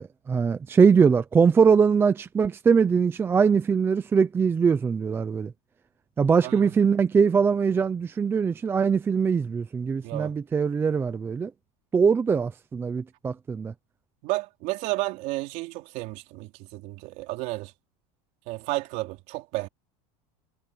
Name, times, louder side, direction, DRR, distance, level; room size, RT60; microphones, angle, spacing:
voice 1, 0.0-5.5 6.2-11.5 11.9-13.7, right 6 dB, 15° right, 0.6 m, -22 dB
voice 2, 10.0-10.4 14.2-17.7 18.5-19.7, right 20 dB, 55° right, 3.7 m, -32 dB
cardioid pair, 165°, 16 cm